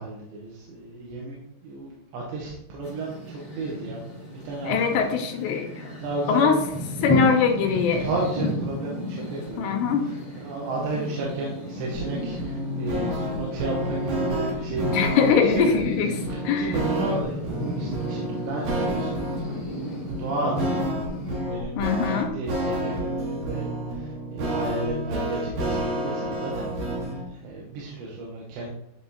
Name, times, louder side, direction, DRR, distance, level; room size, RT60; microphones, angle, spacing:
voice 1, 0.0-4.0 4.3-5.1 6.0-6.9 7.2-7.4 8.0-15.8 16.1-20.8 21.5-26.7 27.3-28.7, right 2 dB, 80° right, -4 dB, 3.2 m, -33 dB
sound 1, 2.8-21.4, equal, 40° left, 0.8 m, -34 dB
voice 2, 4.7-5.9 6.3-6.6 7.0-8.1 9.6-10.1 14.9-16.2 16.4-16.8 21.8-22.3, left 6 dB, 85° left, 4 dB, 2.7 m, -22 dB
sound 2, 11.9-27.2, right 1 dB, 60° right, 2.0 m, -30 dB
10.5 x 3.6 x 2.8 m, 0.78 s
omnidirectional pair, 5.1 m